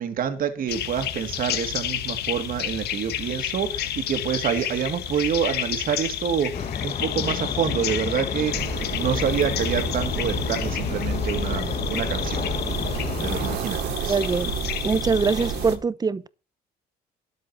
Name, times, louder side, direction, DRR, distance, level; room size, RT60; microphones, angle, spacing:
voice 1, 0.0-12.5 13.2-14.2, right 8 dB, 60° right, 2.5 m, -27 dB
sound 1, 0.7-15.8, left 11 dB, 75° left, 1.7 m, -31 dB
sound 2, 6.5-13.6, left 7 dB, 45° left, 1.2 m, -31 dB
sound 3, 8.5-15.8, right 8 dB, 85° right, 2.7 m, -32 dB
voice 2, 14.0-14.5 14.8-16.3, right 5 dB, 25° right, 0.8 m, -23 dB
13.0 x 11.0 x 4.5 m
cardioid pair, 100°, 17 cm